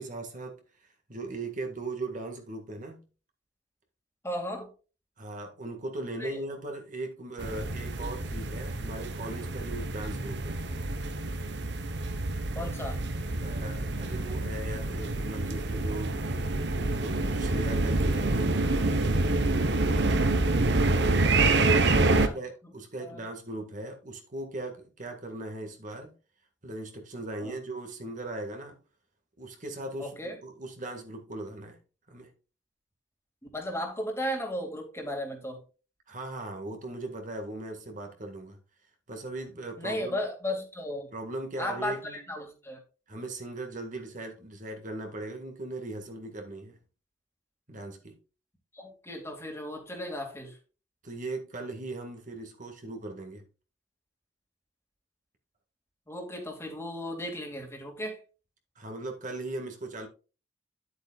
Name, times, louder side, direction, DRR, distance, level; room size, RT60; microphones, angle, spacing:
voice 1, 0.0-3.0 5.2-10.6 13.4-16.1 17.0-18.9 21.3-26.1 26.6-28.8 29.4-31.8 32.1-32.3 36.1-38.6 39.1-40.2 41.1-42.2 43.1-46.8 47.7-48.1 51.0-53.4 58.8-60.1, right 2 dB, 45° right, 1.9 m, -39 dB
voice 2, 4.2-4.7 6.2-6.4 12.5-13.0 21.3-22.3 23.0-23.2 27.4-27.5 30.0-30.4 33.5-35.6 39.8-41.1 41.6-42.8 48.7-50.6 56.1-58.2, left 1 dB, 15° left, 2.3 m, -35 dB
sound 1, 7.4-22.3, right 2 dB, 60° right, 1.1 m, -27 dB
11.0 x 8.1 x 2.4 m
head